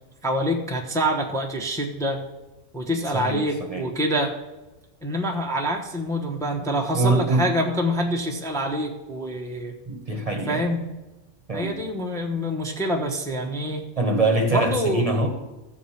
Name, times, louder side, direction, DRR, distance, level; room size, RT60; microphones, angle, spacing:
voice 1, 0.2-2.3 2.7-4.3 5.0-9.7 10.5-10.8 11.5-13.8 14.5-15.0, equal, 5° left, 1 dB, 1.0 m, -26 dB
voice 2, 3.1-3.9 6.9-7.5 9.9-10.7 11.5-11.8 14.0-15.3, right 2 dB, 30° right, 3 dB, 1.2 m, -24 dB
14.5 x 4.8 x 7.2 m, 1.1 s
omnidirectional pair, 1.3 m